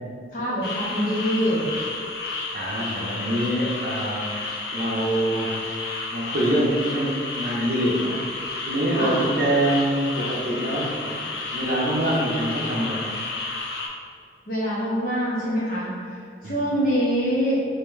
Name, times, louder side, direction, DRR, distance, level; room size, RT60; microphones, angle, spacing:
voice 1, 0.3-1.7 8.9-9.2 14.5-17.7, equal, 45° left, -7 dB, 1.1 m, -25 dB
sound 1, 0.6-13.9, left 3 dB, 65° left, 0.5 m, -31 dB
voice 2, 2.5-5.5 6.1-8.2 8.7-11.2 11.5-13.1 16.4-16.6, right 1 dB, 50° right, -3 dB, 0.6 m, -25 dB
3.4 x 2.9 x 3.7 m, 2.3 s
head